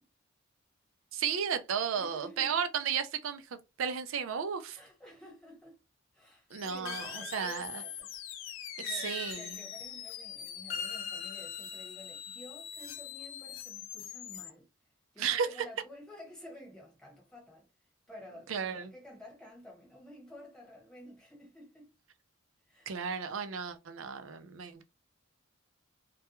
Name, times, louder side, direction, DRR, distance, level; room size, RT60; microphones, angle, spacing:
voice 1, 1.1-3.4 3.8-4.8 6.5-7.8 8.8-9.6 15.2-15.5 18.5-18.9 22.9-24.8, right 7 dB, 70° right, 0.4 m, -34 dB
voice 2, 1.9-2.6 4.7-5.8 6.1-8.1 8.8-14.7 15.1-17.7 18.1-21.9 22.7-23.0, left 1 dB, 5° left, 1.1 m, -52 dB
sound 1, 6.5-14.5, left 9 dB, 65° left, 0.3 m, -44 dB
sound 2, 6.9-8.2 8.9-10.0 10.7-12.2, left 5 dB, 50° left, 0.7 m, -42 dB
2.2 x 2.2 x 2.9 m
head